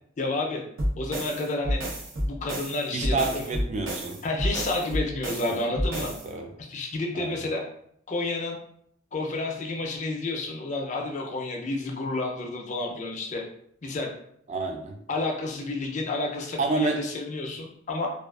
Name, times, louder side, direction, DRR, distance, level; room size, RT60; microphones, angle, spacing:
voice 1, 0.2-0.6 1.0-1.8 2.2-3.6 4.2-6.1 6.7-7.6 8.1-8.6 9.1-13.4 13.8-14.1 15.1-18.1, left 2 dB, 35° left, 1 dB, 0.4 m, -30 dB
sound 1, 0.8-6.3, equal, 75° right, 0.8 m, -30 dB
voice 2, 2.9-4.2 5.5-5.6 6.0-6.5 7.1-7.5 14.5-15.0 16.6-17.0, right 3 dB, 35° right, 3 dB, 0.3 m, -29 dB
2.4 x 2.3 x 2.3 m, 0.67 s
head